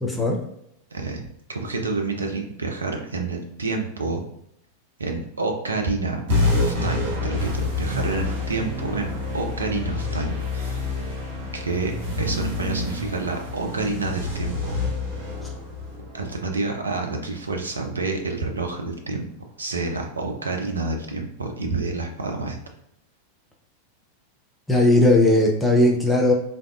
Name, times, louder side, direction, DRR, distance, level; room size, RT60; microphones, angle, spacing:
voice 1, 0.0-0.4 24.7-26.3, left 1 dB, 10° left, -1 dB, 0.6 m, -18 dB
voice 2, 0.9-1.2 1.5-4.2 5.0-6.2 6.6-10.8 11.5-14.8 16.1-19.3 19.6-22.6, right 3 dB, 75° right, 3 dB, 0.5 m, -28 dB
sound 1, 6.3-17.1, left 2 dB, 55° right, 1.3 m, -27 dB
3.4 x 2.6 x 2.4 m, 0.74 s
figure-of-eight pair, 90°, 0 cm